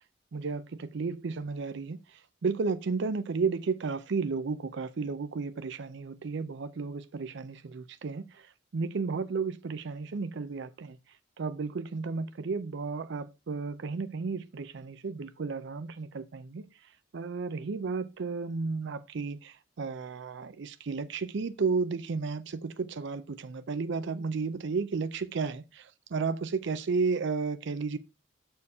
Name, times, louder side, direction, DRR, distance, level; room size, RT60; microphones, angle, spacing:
voice 1, 0.3-2.0 2.4-8.4 8.7-11.0 11.4-16.6 17.1-28.0, right 4 dB, 60° right, 0.5 m, -33 dB
7.0 x 4.4 x 4.7 m
head